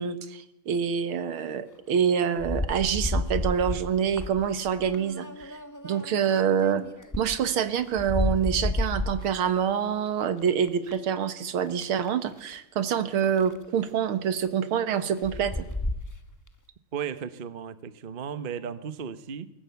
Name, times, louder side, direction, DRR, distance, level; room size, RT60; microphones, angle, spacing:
voice 1, 0.0-5.6 5.8-6.8 7.2-15.6, right 8 dB, 80° right, 12 dB, 2.2 m, -26 dB
sound 1, 2.4-7.4 7.8-9.3 10.1-10.9 11.6-12.1 12.5-12.6 13.2-13.6 14.9-15.0 15.2-16.1, left 2 dB, 15° left, 0.6 m, -31 dB
voice 2, 16.9-19.5, right 7 dB, 40° right, 13 dB, 0.8 m, -35 dB
22.0 x 18.5 x 8.2 m, 0.88 s
omnidirectional pair, 2.3 m